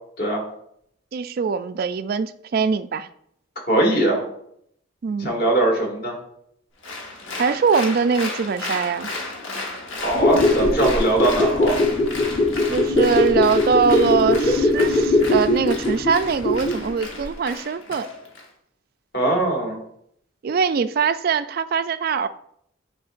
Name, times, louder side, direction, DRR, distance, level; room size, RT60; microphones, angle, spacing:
voice 1, 1.1-3.1 5.0-5.3 7.4-9.1 12.7-18.1 20.4-22.3, right 5 dB, 45° right, 13 dB, 0.3 m, -22 dB
voice 2, 3.7-4.2 5.2-6.2 10.0-11.8 19.1-19.8, right 2 dB, 50° left, 0 dB, 1.8 m, -21 dB
Applause, 6.8-18.5, left 2 dB, 75° left, 1.4 m, -34 dB
sound 1, 10.0-16.9 17.2-17.3, left 2 dB, 35° left, 1.1 m, -20 dB
9.6 x 4.5 x 2.5 m, 0.71 s
head